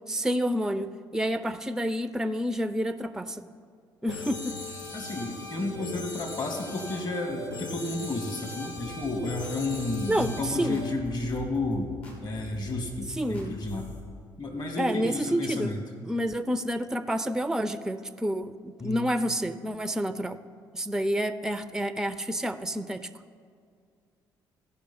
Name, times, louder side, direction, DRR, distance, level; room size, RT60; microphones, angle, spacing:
voice 1, 0.0-3.4 4.0-4.5 10.1-10.8 13.1-13.6 14.8-15.7 16.0-20.4 20.7-23.1, equal, 5° right, 13 dB, 0.5 m, -29 dB
sound 1, 4.1-10.9, left 3 dB, 85° left, 0.8 m, -39 dB
voice 2, 4.9-11.9 12.2-13.9 14.4-15.8 18.8-19.0, left 2 dB, 40° left, 3 dB, 1.7 m, -32 dB
sound 2, 8.8-14.0, left 4 dB, 60° left, 2.5 m, -45 dB
15.0 x 5.3 x 5.5 m, 2.2 s
hypercardioid pair, 50°, 11 cm